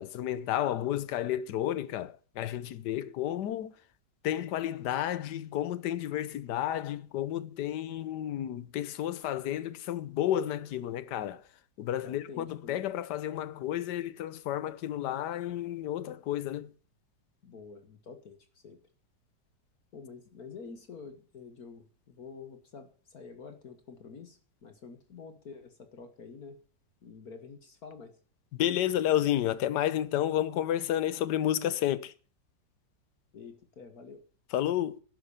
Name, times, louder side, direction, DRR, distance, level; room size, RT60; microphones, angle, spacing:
voice 1, 0.0-3.7 4.2-11.4 11.8-16.7 28.5-32.1 34.5-35.0, left 12 dB, 70° left, 1.4 m, -31 dB
voice 2, 11.9-12.8 17.4-18.8 19.9-26.6 27.0-28.2 33.3-34.2, left 5 dB, 55° left, 1.8 m, -48 dB
11.5 x 10.0 x 6.9 m
omnidirectional pair, 1.9 m